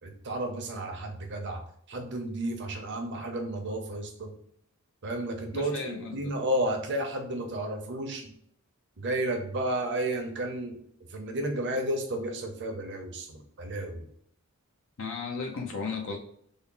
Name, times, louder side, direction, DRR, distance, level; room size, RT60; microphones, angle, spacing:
voice 1, 0.0-1.6 1.9-4.3 5.0-8.3 9.0-10.8 11.1-14.1, right 1 dB, 55° right, 3 dB, 0.8 m, -32 dB
voice 2, 5.5-6.3 15.0-16.2, left 4 dB, 60° left, 2 dB, 0.6 m, -35 dB
3.6 x 2.1 x 3.8 m, 0.68 s
head